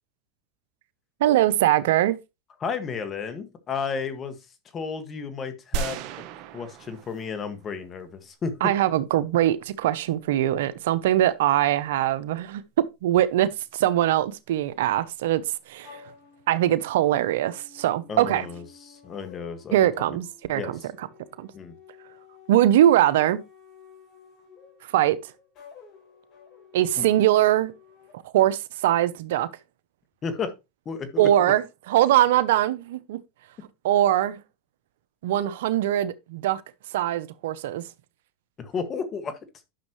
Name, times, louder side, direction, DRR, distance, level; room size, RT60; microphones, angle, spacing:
voice 1, 1.2-2.2 8.6-12.6 13.0-15.4 15.7-16.0 16.5-18.5 19.7-20.6 21.4-21.5 22.5-23.4 24.9-25.2 26.7-27.7 28.3-29.5 31.2-33.2 33.8-34.4 35.2-36.6 36.9-37.8, right 13 dB, 75° right, 0.7 m, -22 dB
voice 2, 2.6-4.4 4.7-6.0 6.5-8.5 18.1-19.8 20.1-20.2 20.5-20.8 21.5-21.7 27.0-27.1 30.2-30.5 30.9-31.5 38.6-39.4, left 5 dB, 30° left, 1.8 m, -32 dB
sound 1, 5.7-8.0, right 7 dB, 60° right, 1.1 m, -34 dB
sound 2, 15.8-28.1, left 7 dB, 45° left, 5.5 m, -51 dB
10.5 x 6.4 x 3.1 m
hypercardioid pair, 110°, 0 cm